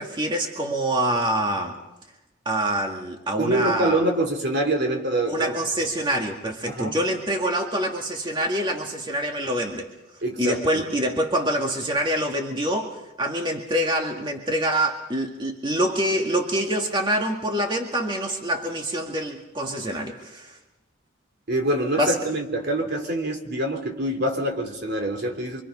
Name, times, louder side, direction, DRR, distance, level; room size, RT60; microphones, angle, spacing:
voice 1, 0.0-1.8 2.5-4.0 5.3-9.9 10.4-20.6 22.0-22.2, right 1 dB, 25° right, 1 dB, 2.0 m, -25 dB
voice 2, 3.4-5.8 6.7-7.0 10.2-10.8 21.5-25.6, right 1 dB, 55° right, 4 dB, 3.3 m, -25 dB
26.5 x 25.5 x 5.4 m, 0.98 s
head